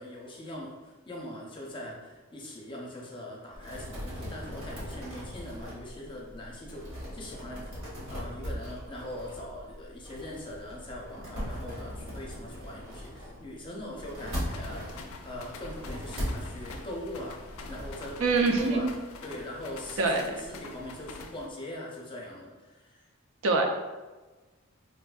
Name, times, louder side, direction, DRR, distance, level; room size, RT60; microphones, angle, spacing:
voice 1, 0.0-18.9 19.2-23.0, left 1 dB, 25° left, -2 dB, 0.6 m, -41 dB
sound 1, 3.5-18.9, equal, 85° right, 1.1 m, -40 dB
sound 2, 14.4-21.5, left 3 dB, 80° left, 0.4 m, -46 dB
voice 2, 18.2-18.9 20.0-20.2 23.4-23.7, right 3 dB, 70° right, 3 dB, 0.4 m, -24 dB
4.2 x 2.5 x 2.3 m, 1.2 s
head